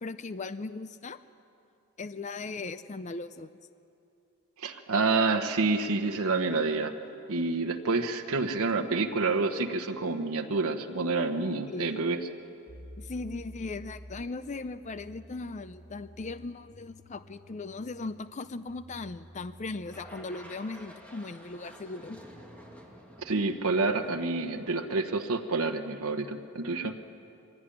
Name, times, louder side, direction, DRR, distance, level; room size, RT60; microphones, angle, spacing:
voice 1, 0.0-1.2 2.0-3.5 11.7-12.0 13.0-22.2, left 3 dB, 30° left, 12 dB, 0.5 m, -38 dB
voice 2, 4.6-6.9 7.3-12.2 23.2-26.9, right 3 dB, 75° right, 4 dB, 1.2 m, -28 dB
sound 1, 12.7-20.2, equal, 45° right, 2.5 m, -50 dB
sound 2, 19.9-25.2, equal, 5° left, 2.2 m, -51 dB
23.5 x 17.0 x 10.0 m, 2.8 s
head